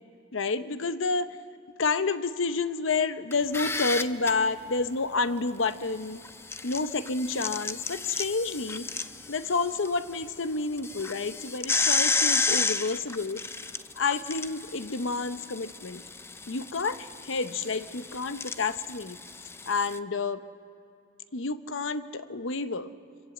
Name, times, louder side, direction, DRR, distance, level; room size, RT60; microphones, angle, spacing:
voice 1, 0.3-1.4 1.8-6.2 6.6-8.9 9.3-13.4 14.0-16.0 16.5-19.2 19.7-20.4 21.3-22.9, left 4 dB, 65° left, 11 dB, 0.8 m, -29 dB
sound 1, 3.3-4.3 6.2-9.9 10.2-10.3 10.8-20.0, left 4 dB, 10° left, 0.4 m, -31 dB
25.0 x 18.0 x 7.8 m, 2.7 s
head